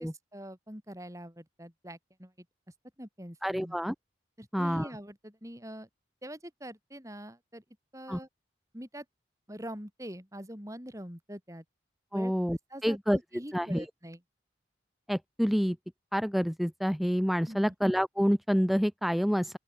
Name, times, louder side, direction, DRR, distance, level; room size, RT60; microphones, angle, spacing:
voice 1, 0.0-2.3 3.0-3.8 4.4-5.9 6.2-7.6 7.9-8.3 8.7-9.0 9.5-11.6 12.1-12.3 12.7-14.2 17.4-17.7, equal, 15° right, 6.6 m, -44 dB
voice 2, 3.4-3.9 4.5-4.9 8.1-8.2 12.1-13.2 13.5-13.8 15.1-15.8 16.1-19.6, equal, ahead, 1.0 m, -28 dB
open air
head